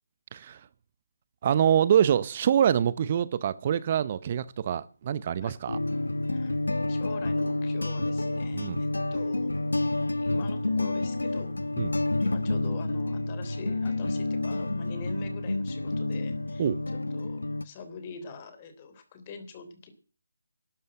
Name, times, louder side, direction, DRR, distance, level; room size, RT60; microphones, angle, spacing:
voice 1, 1.4-5.8 8.5-8.8 11.8-11.9 16.6-16.8, right 9 dB, 35° right, 0.7 m, -25 dB
sound 1, 5.7-17.6, left 2 dB, 90° left, 1.1 m, -29 dB
voice 2, 6.3-6.6 6.9-9.9 10.2-11.5 12.2-16.7 17.1-19.9, left 4 dB, 30° left, 3.4 m, -44 dB
13.0 x 11.0 x 7.8 m
figure-of-eight pair, 155°, 0 cm